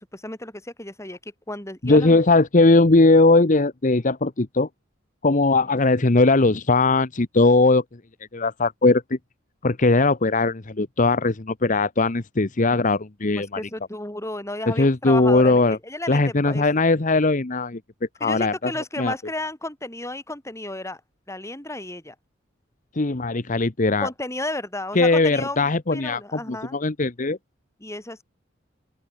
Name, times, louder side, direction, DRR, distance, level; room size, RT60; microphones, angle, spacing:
voice 1, 0.1-2.2 13.4-16.9 18.2-21.0 21.3-22.2 24.0-26.8 27.8-28.2, left 2 dB, 15° left, 7.0 m, -33 dB
voice 2, 1.8-4.7 5.2-7.8 8.3-9.2 9.6-13.5 14.8-15.8 16.1-17.8 18.2-18.7 19.0-19.1 22.9-24.1 24.9-26.2 26.5-27.4, left 3 dB, 40° left, 1.0 m, -19 dB
open air
head